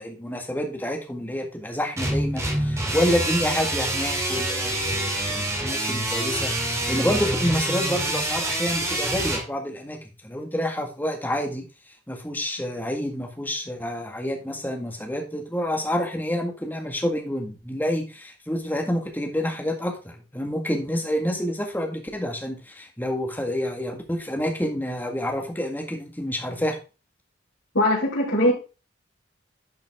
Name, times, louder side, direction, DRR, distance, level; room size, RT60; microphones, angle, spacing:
voice 1, 0.0-11.6 12.1-26.8, equal, 10° left, 2 dB, 1.8 m, -28 dB
sound 1, 2.0-9.4, right 1 dB, 15° right, 2.1 m, -26 dB
voice 2, 27.7-28.5, left 1 dB, 80° left, -8 dB, 3.8 m, -20 dB
11.0 x 5.7 x 3.6 m, 0.32 s
head